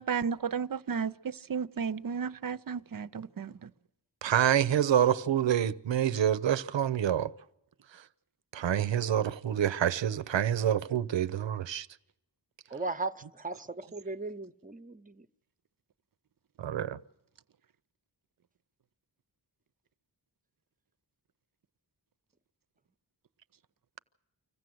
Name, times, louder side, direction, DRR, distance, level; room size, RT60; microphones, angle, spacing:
voice 1, 0.0-3.7, right 6 dB, 50° right, 0.7 m, -33 dB
voice 2, 4.2-7.3 8.5-11.9 16.6-17.0, right 10 dB, 85° right, 0.7 m, -27 dB
voice 3, 12.7-15.3, right 3 dB, 20° right, 0.8 m, -37 dB
25.0 x 15.5 x 7.8 m
wide cardioid pair, 65°, 43 cm